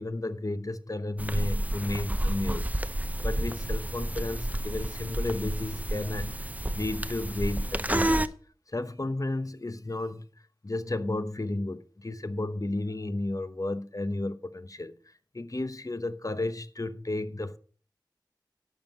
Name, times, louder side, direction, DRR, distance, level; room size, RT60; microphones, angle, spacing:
voice 1, 0.0-2.7 3.2-8.3 8.7-10.3 10.6-14.9 15.3-17.6, left 2 dB, 45° left, 0.9 m, -33 dB
sound 1, 1.2-8.3, right 1 dB, 20° right, 0.7 m, -30 dB
12.0 x 7.1 x 5.5 m
wide cardioid pair, 45°, 8 cm